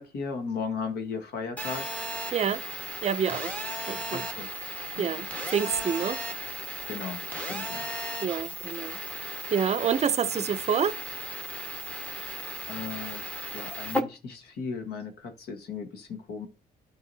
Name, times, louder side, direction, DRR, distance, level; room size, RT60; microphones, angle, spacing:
voice 1, 0.0-2.0 4.1-4.5 6.9-7.9 10.3-10.6 12.7-16.5, left 5 dB, 85° left, 1.4 m, -36 dB
Telephone, 1.6-14.0, right 1 dB, 10° left, 1.4 m, -35 dB
voice 2, 2.3-2.6 3.0-3.5 3.9-4.2 5.0-6.2 8.2-9.0 9.5-11.0, right 7 dB, 45° right, 0.6 m, -27 dB
12.0 x 4.8 x 2.7 m
cardioid pair, 95°, 16 cm